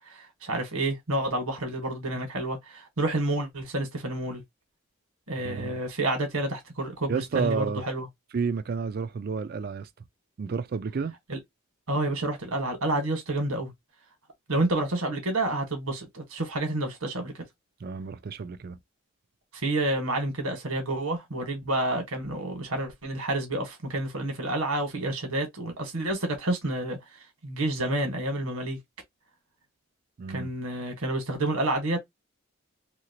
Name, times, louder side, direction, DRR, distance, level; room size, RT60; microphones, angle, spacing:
voice 1, 0.1-4.4 5.3-8.1 11.3-11.4 11.9-13.7 14.5-17.4 19.6-27.0 27.4-28.8 30.3-32.0, right 1 dB, 85° right, 1.5 m, -29 dB
voice 2, 5.4-5.8 7.1-7.9 8.3-9.9 10.4-11.1 17.8-18.8 30.2-30.5, right 5 dB, 45° right, 0.3 m, -31 dB
2.9 x 2.8 x 2.9 m
head